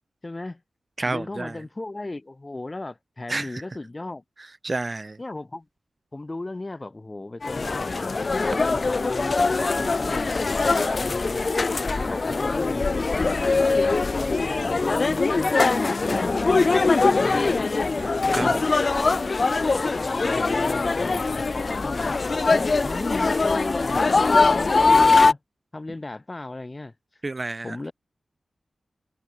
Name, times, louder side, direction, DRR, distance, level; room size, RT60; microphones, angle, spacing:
voice 1, 0.2-0.6 1.0-4.2 5.2-5.7 6.1-7.7 8.7-11.5 12.0-17.5 18.4-19.2 19.8-22.2 22.5-25.4 25.7-26.9 27.6-27.9, left 2 dB, 25° left, 5.4 m, -35 dB
voice 2, 1.0-1.6 3.3-3.6 4.6-5.2 10.8-11.0 11.9-12.2 16.1-17.0 18.0-18.6 27.2-27.9, right 2 dB, 35° right, 1.6 m, -32 dB
sound 1, 7.4-25.3, left 3 dB, 45° left, 0.5 m, -22 dB
wide cardioid pair, 90°, 0 cm